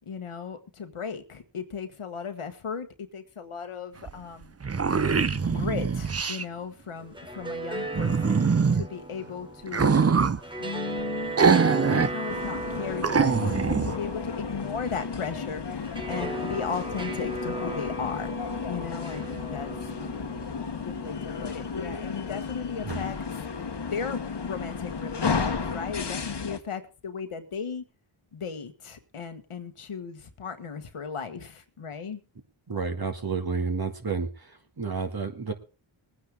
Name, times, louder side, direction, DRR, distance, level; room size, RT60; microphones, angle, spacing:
voice 1, 0.0-4.5 5.4-10.0 10.6-11.5 11.9-15.8 16.1-18.4 18.7-20.3 20.7-23.2 23.8-27.8 28.3-32.2, left 6 dB, 80° left, 7 dB, 1.5 m, -36 dB
sound 1, 4.1-4.2 4.4-6.4 7.9-8.9 9.7-10.4 11.4-12.1 12.5-12.6 13.0-14.0, right 5 dB, 30° right, 0.7 m, -23 dB
sound 2, 7.0-22.2, right 2 dB, 10° right, 1.7 m, -37 dB
sound 3, 12.3-26.6, left 5 dB, 55° left, 1.4 m, -33 dB
voice 2, 32.7-34.3 34.8-35.5, right 5 dB, 45° right, 5 dB, 2.2 m, -30 dB
20.5 x 9.5 x 3.6 m, 0.33 s
cardioid pair, 45°, 50 cm